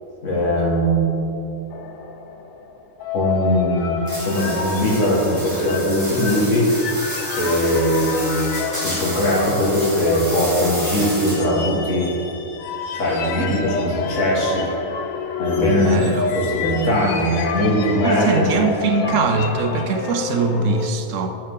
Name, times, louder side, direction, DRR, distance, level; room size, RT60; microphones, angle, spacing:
voice 1, 0.2-1.1 3.1-6.7 7.4-8.5 8.7-12.1 12.9-14.7 15.4-16.1 16.3-18.6 19.0-19.3, equal, 70° left, -4 dB, 2.0 m, -20 dB
sound 1, 1.7-20.9, left 5 dB, 90° left, 1.0 m, -29 dB
sound 2, 4.1-11.6, right 1 dB, 15° right, 2.0 m, -31 dB
voice 2, 15.7-16.3 18.0-21.4, right 4 dB, 75° right, 7 dB, 1.0 m, -22 dB
13.0 x 4.6 x 3.6 m, 2.7 s
omnidirectional pair, 1.3 m